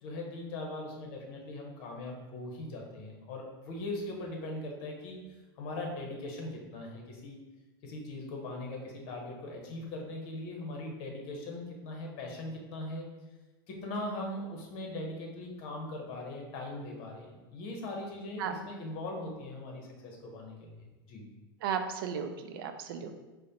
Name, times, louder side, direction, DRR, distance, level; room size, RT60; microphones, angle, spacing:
voice 1, 0.0-5.2 5.6-7.4 7.8-13.1 13.7-21.3, left 2 dB, 50° left, 1 dB, 0.9 m, -40 dB
voice 2, 21.6-23.1, right 7 dB, 70° right, 7 dB, 0.4 m, -34 dB
4.8 x 2.1 x 2.8 m, 1.1 s
supercardioid pair, 130°, 12 cm